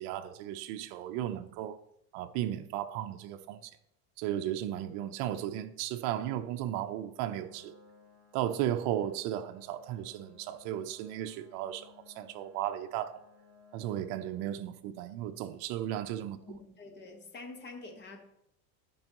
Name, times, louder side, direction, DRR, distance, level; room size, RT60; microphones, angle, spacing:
voice 1, 0.0-1.8 2.1-3.7 4.2-7.7 8.3-13.2 13.7-16.4, right 11 dB, 60° right, 0.8 m, -35 dB
sound 1, 7.5-14.4, left 3 dB, 20° right, 3.7 m, -60 dB
voice 2, 16.4-18.2, left 3 dB, 25° left, 1.5 m, -46 dB
13.0 x 5.4 x 3.0 m
supercardioid pair, 130°, 45 cm